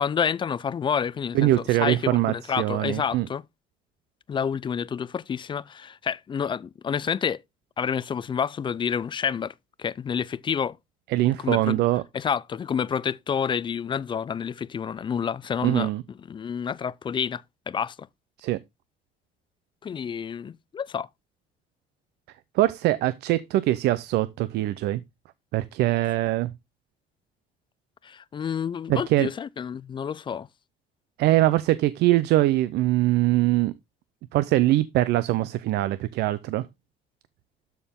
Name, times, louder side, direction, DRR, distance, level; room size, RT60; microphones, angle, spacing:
voice 1, 0.0-3.4 4.3-7.4 7.8-9.5 9.8-10.8 11.4-11.8 12.1-15.9 16.3-18.0 19.8-21.1 28.0-30.5, left 7 dB, 30° left, 0.4 m, -29 dB
voice 2, 1.3-3.3 11.1-12.0 15.6-16.0 18.4-18.6 22.5-25.0 25.5-26.5 28.9-29.3 31.2-33.7 34.3-36.7, right 15 dB, 80° right, 0.5 m, -22 dB
12.5 x 4.5 x 3.5 m
cardioid pair, 110°, 17 cm